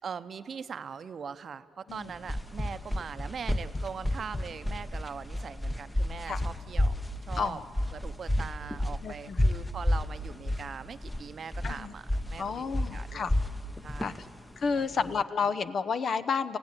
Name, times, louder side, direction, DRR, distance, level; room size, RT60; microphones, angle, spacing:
voice 1, 0.0-6.9 7.3-7.6 7.9-12.0 12.3-13.3 13.8-14.2 14.7-14.8, right 6 dB, 50° right, 13 dB, 0.8 m, -41 dB
sound 1, 1.9-15.2, left 1 dB, 10° left, 1.0 m, -31 dB
voice 2, 9.0-9.4 11.6-11.9 12.4-13.3 14.0-14.1 14.6-16.6, left 5 dB, 50° left, 13 dB, 0.9 m, -31 dB
25.0 x 16.0 x 9.9 m, 2.3 s
cardioid pair, 90°, 0 cm